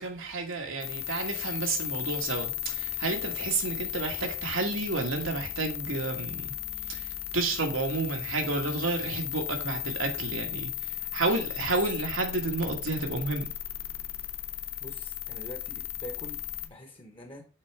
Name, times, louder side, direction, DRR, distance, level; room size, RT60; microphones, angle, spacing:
voice 1, 0.0-6.5 6.9-7.0 7.3-10.7 11.1-13.5, right 3 dB, 75° right, 1.4 m, -30 dB
sound 1, 0.8-16.7, left 14 dB, 65° left, 0.8 m, -36 dB
voice 2, 14.8-17.5, equal, 25° left, 1.1 m, -45 dB
6.5 x 3.9 x 4.5 m
head